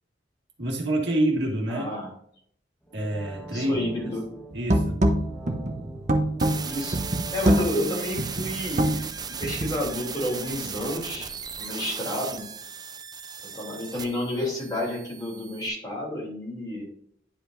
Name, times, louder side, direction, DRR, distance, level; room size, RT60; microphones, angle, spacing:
voice 1, 0.6-1.9 2.9-4.2 4.5-5.0, right 1 dB, 70° right, -1 dB, 1.8 m, -27 dB
voice 2, 1.7-2.1 3.5-4.3 6.6-7.0 7.3-11.3 11.6-12.5 13.5-16.9, left 1 dB, 20° left, -3 dB, 3.0 m, -31 dB
sound 1, 2.8-9.7 10.0-10.1, right 2 dB, 5° left, 1.2 m, -44 dB
sound 2, 4.5-9.8, right 1 dB, 40° right, 0.9 m, -25 dB
sound 3, 6.4-15.7, right 6 dB, 25° right, 0.5 m, -37 dB
10.5 x 5.2 x 2.6 m, 0.67 s
head